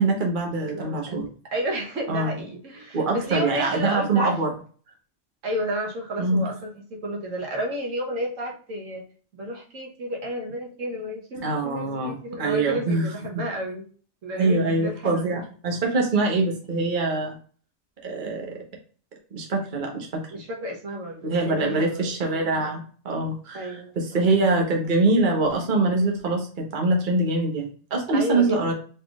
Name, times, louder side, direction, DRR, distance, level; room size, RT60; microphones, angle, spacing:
voice 1, 0.0-1.3 2.1-2.3 2.9-4.5 6.2-6.4 11.4-13.1 14.4-17.4 18.0-18.5 19.3-20.2 21.2-28.7, right 3 dB, 40° right, 1 dB, 1.1 m, -24 dB
voice 2, 0.6-4.4 5.4-9.0 9.3-13.8 14.2-15.3 20.3-22.1 23.5-23.9 28.1-28.7, equal, 75° right, 0 dB, 1.4 m, -31 dB
4.3 x 3.7 x 2.3 m, 0.42 s
omnidirectional pair, 1.4 m